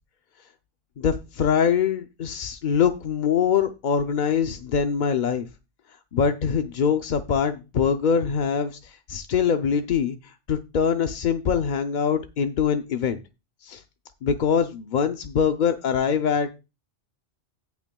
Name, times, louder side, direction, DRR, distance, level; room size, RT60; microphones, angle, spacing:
voice 1, 1.0-5.5 6.1-13.2 13.6-13.8 14.2-16.5, left 7 dB, 50° left, 7 dB, 0.6 m, -23 dB
17.5 x 5.9 x 2.3 m, 0.28 s
omnidirectional pair, 1.2 m